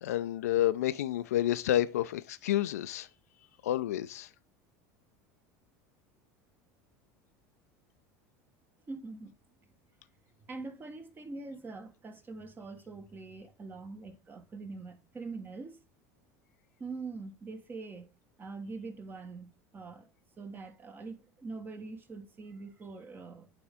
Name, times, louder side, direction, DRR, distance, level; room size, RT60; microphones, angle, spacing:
voice 1, 0.0-3.1 3.6-4.3, left 13 dB, 90° left, 0.4 m, -29 dB
voice 2, 8.9-9.3 10.5-15.8 16.8-18.1 18.4-20.1 20.4-23.5, right 3 dB, 25° right, 1.0 m, -43 dB
8.8 x 3.6 x 3.5 m
supercardioid pair, 100°, 8 cm